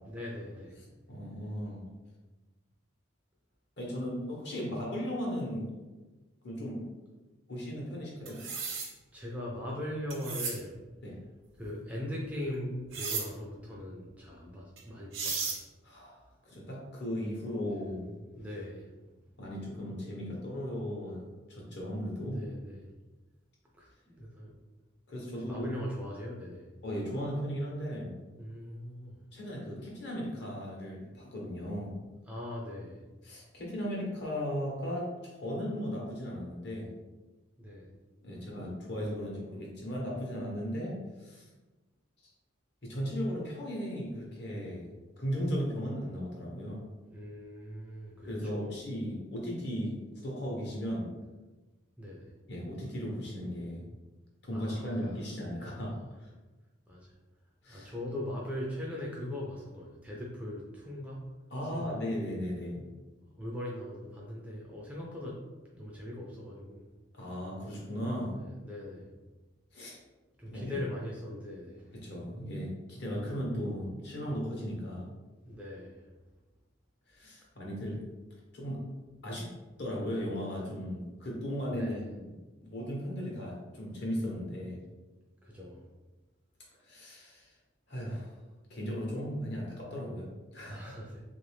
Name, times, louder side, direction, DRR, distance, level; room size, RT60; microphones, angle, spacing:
voice 1, 0.1-0.8 9.1-10.8 11.6-15.5 18.3-18.9 22.2-22.9 23.8-24.5 25.4-26.7 28.4-29.2 32.3-33.0 37.6-37.9 47.1-48.7 52.0-52.3 54.5-55.1 55.5-55.7 56.9-57.1 57.7-61.2 61.7-62.0 63.4-65.4 65.7-66.9 68.3-69.1 70.4-71.9 75.4-76.0 81.7-82.1 85.4-85.8 90.7-91.2, left 1 dB, 5° right, -4 dB, 0.4 m, -40 dB
voice 2, 1.1-1.8 3.8-5.7 6.4-6.9 7.5-8.5 11.0-11.2 15.8-16.1 16.4-18.1 19.4-22.4 25.1-25.7 26.8-28.2 29.3-32.0 33.2-36.9 38.2-41.4 42.8-44.9 45.2-46.8 48.2-51.1 52.5-53.8 54.4-56.3 57.6-57.9 61.5-62.9 67.1-68.4 69.7-70.0 70.5-70.8 71.9-75.0 77.1-78.0 78.5-78.8 79.2-79.5 79.8-82.3 82.6-84.8 86.8-87.5 87.9-88.3 88.7-90.9, equal, 55° left, -4 dB, 1.0 m, -36 dB
sound 1, 8.3-8.9 10.1-10.6 12.9-13.3 14.8-14.9 15.1-15.6, right 5 dB, 80° right, 0.8 m, -34 dB
3.1 x 2.6 x 3.3 m, 1.2 s
head